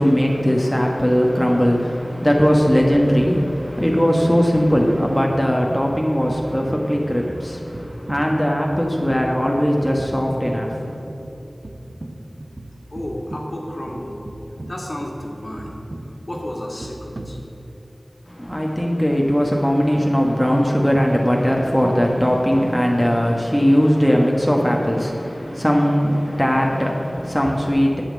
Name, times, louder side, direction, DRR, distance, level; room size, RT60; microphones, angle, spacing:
voice 1, 0.0-11.0 18.3-28.0, equal, 5° left, -1 dB, 1.2 m, -19 dB
sound 1, 2.6-18.0, right 1 dB, 60° right, 0.8 m, -37 dB
voice 2, 12.9-14.2 14.7-15.7 16.0-17.4, left 1 dB, 50° left, -1 dB, 1.9 m, -32 dB
8.8 x 7.3 x 7.4 m, 2.9 s
wide cardioid pair, 40°, 0 cm